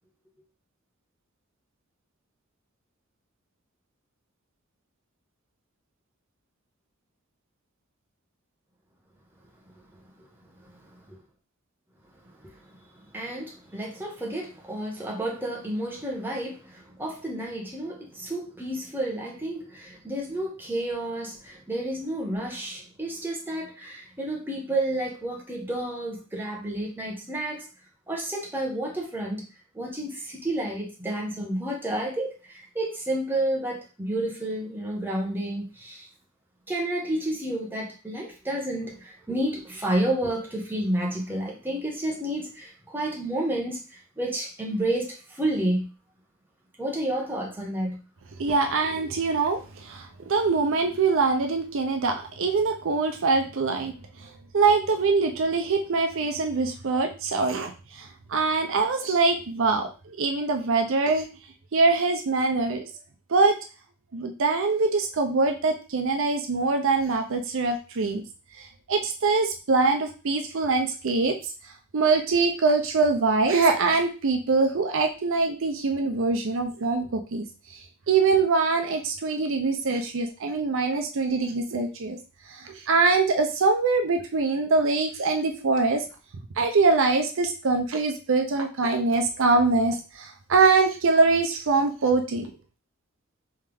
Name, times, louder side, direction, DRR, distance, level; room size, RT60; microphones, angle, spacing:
voice 1, 10.6-11.2 12.4-12.5 13.1-27.7 28.1-29.4 29.7-36.1 36.7-45.9 46.8-48.0, right 1 dB, 10° right, -2 dB, 1.1 m, -30 dB
voice 2, 48.4-53.9 54.5-61.3 61.7-62.9 63.3-63.5 64.1-68.2 68.9-71.3 71.9-77.4 78.1-82.2 82.5-86.0 86.6-92.5, right 3 dB, 65° right, 5 dB, 0.5 m, -23 dB
3.5 x 3.3 x 3.4 m, 0.34 s
head